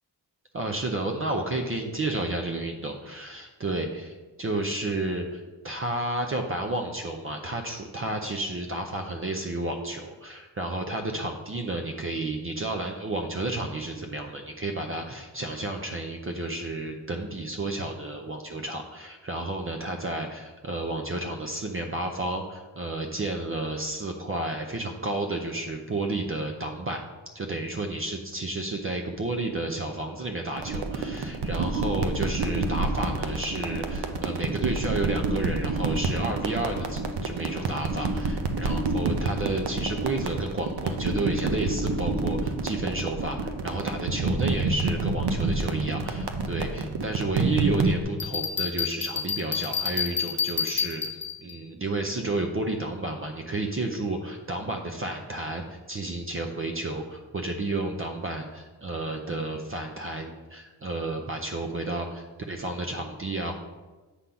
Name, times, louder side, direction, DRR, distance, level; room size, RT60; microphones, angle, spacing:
voice 1, 0.5-27.0 27.3-63.5, right 2 dB, 30° right, 3 dB, 0.5 m, -31 dB
sound 1, 30.6-48.0, right 3 dB, 70° right, 0.8 m, -28 dB
Bell, 48.2-51.5, left 6 dB, 25° left, 0.6 m, -29 dB
8.2 x 3.8 x 5.6 m, 1.2 s
wide cardioid pair, 170°, 42 cm